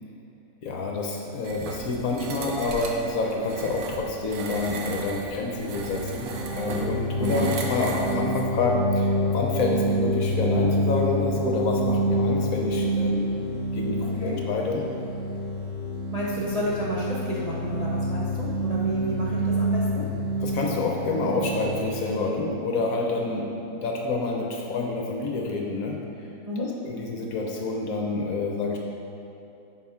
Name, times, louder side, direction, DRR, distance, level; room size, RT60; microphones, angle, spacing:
voice 1, 0.6-13.3 13.7-14.8 20.4-23.5 23.8-26.0 26.6-28.8, left 3 dB, 65° left, 0 dB, 1.0 m, -28 dB
sound 1, 1.4-8.5, right 3 dB, 90° right, 1.4 m, -36 dB
sound 2, 5.6-23.1, equal, 70° right, 2.5 m, -27 dB
voice 2, 7.2-7.5 14.0-14.4 16.1-20.1 26.5-26.7, equal, 40° right, -7 dB, 0.5 m, -31 dB
10.5 x 4.2 x 3.6 m, 2.8 s
omnidirectional pair, 1.8 m